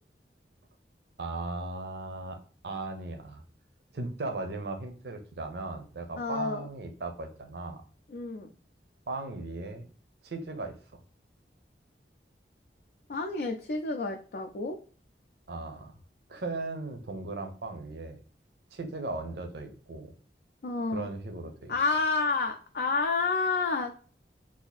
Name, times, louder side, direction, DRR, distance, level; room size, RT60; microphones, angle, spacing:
voice 1, 1.2-3.4 3.9-7.8 9.1-9.9 10.2-11.0 15.5-15.9 16.3-18.2 18.7-20.1 20.9-21.8, right 2 dB, 70° right, 6 dB, 0.6 m, -37 dB
voice 2, 6.2-6.7 8.1-8.5 13.1-14.8 20.6-21.1 21.7-24.0, left 4 dB, 55° left, 3 dB, 0.4 m, -29 dB
2.7 x 2.5 x 3.9 m, 0.42 s
head